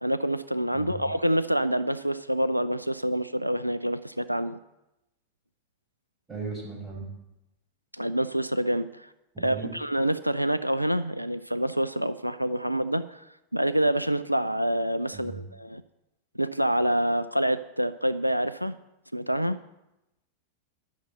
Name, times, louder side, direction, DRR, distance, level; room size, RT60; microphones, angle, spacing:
voice 1, 0.0-4.6 7.9-9.1 9.4-13.2 13.5-15.8 16.4-18.7 19.1-19.6, right 1 dB, 90° right, 14 dB, 0.3 m, -27 dB
voice 2, 0.7-1.0 6.3-7.1 9.3-9.7 15.1-15.4, right 4 dB, 10° right, -3 dB, 5.5 m, -37 dB
11.5 x 6.5 x 7.7 m, 0.94 s
figure-of-eight pair, 90°, 0 cm